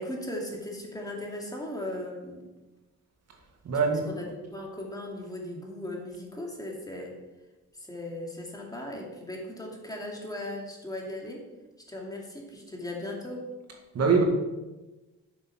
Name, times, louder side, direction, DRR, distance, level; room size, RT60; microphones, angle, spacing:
voice 1, 0.0-2.5 4.1-7.2 7.8-11.4 11.9-13.5, left 1 dB, 10° left, -1 dB, 2.5 m, -37 dB
voice 2, 3.6-4.1 13.9-14.2, right 5 dB, 55° right, 2 dB, 2.1 m, -23 dB
8.3 x 6.9 x 5.9 m, 1.1 s
cardioid pair, 90°, 30 cm